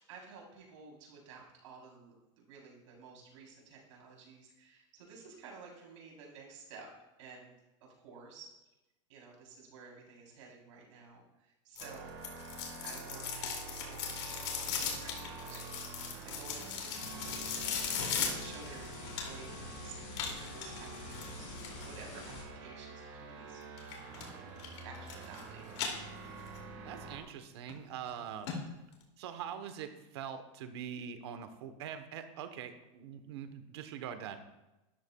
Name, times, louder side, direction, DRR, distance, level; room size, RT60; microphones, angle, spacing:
voice 1, 0.1-6.9 7.2-7.5 8.0-8.5 9.1-12.2 12.8-23.6 24.2-24.4 24.8-25.7, right 5 dB, 85° right, -2 dB, 3.4 m, -53 dB
sound 1, 11.8-19.6 20.1-21.9 23.8-24.3 24.6-25.4 25.7-26.6 27.0-27.1 27.7-27.8 28.1-28.2 28.5-28.6 28.9-29.0, left 7 dB, 70° left, 2.3 m, -38 dB
sound 2, 11.8-27.2, right 4 dB, 35° right, 1.5 m, -48 dB
sound 3, 17.0-22.4, left 3 dB, 45° left, 2.6 m, -47 dB
voice 2, 26.8-28.5 29.2-34.4, right 8 dB, 60° right, 9 dB, 1.0 m, -43 dB
12.5 x 11.0 x 2.3 m, 0.99 s
supercardioid pair, 180°, 16 cm